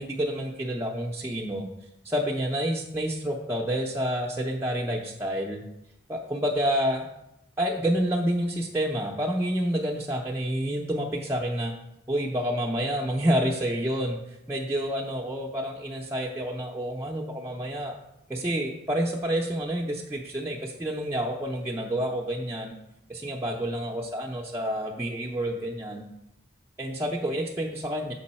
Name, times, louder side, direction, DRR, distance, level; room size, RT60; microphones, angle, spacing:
voice 1, 0.0-1.7 2.0-5.6 6.1-7.1 7.6-11.8 12.1-18.0 18.3-22.7 23.1-26.1 26.8-28.1, equal, 15° right, -3 dB, 0.5 m, -28 dB
6.8 x 5.3 x 4.2 m, 0.85 s
head